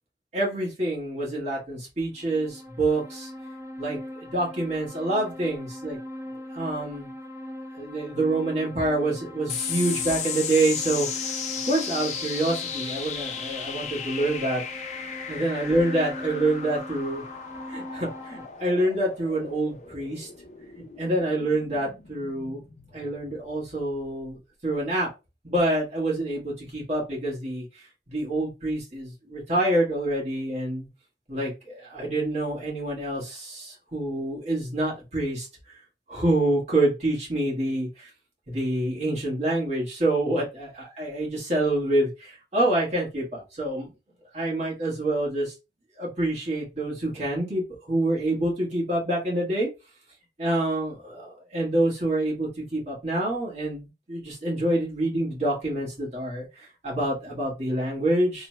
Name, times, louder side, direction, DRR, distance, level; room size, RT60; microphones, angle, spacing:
voice 1, 0.3-3.3 3.8-6.0 6.5-7.1 7.8-11.3 11.6-14.6 15.3-17.2 17.7-20.3 21.0-22.6 22.9-24.4 24.6-25.1 25.4-30.9 31.3-35.5 36.1-38.1 38.5-43.9 44.3-45.5 46.0-49.7 50.4-58.5, right 1 dB, 40° right, -4 dB, 1.4 m, -27 dB
sound 1, 2.2-18.5, left 1 dB, 15° right, 0.5 m, -41 dB
sound 2, 9.5-24.3, left 6 dB, 40° left, 0.4 m, -35 dB
3.2 x 2.1 x 3.0 m, 0.28 s
head